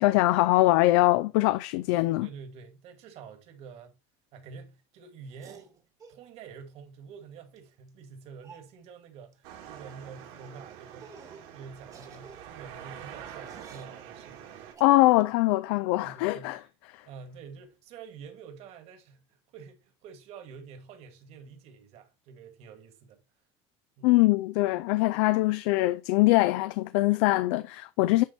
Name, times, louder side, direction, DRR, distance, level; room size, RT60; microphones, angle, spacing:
voice 1, 0.0-2.3 14.8-16.6 16.9-17.0 24.0-28.2, left 19 dB, 75° left, 0.5 m, -23 dB
voice 2, 2.2-4.0 4.3-5.7 6.1-11.2 11.5-14.7 16.0-16.7 17.1-23.2 24.0-24.3 28.1-28.2, right 6 dB, 55° right, 2.0 m, -48 dB
sound 1, 5.3-6.2 7.6-7.7 7.9-8.0 8.4-8.7 9.3-9.6 9.8-10.0 10.4-10.6 11.0-11.5 11.8-14.0 14.7-15.3, right 5 dB, 25° right, 1.3 m, -52 dB
sound 2, 9.4-14.7, right 9 dB, 75° right, 2.5 m, -46 dB
10.0 x 3.5 x 4.3 m
cardioid pair, 145°, 13 cm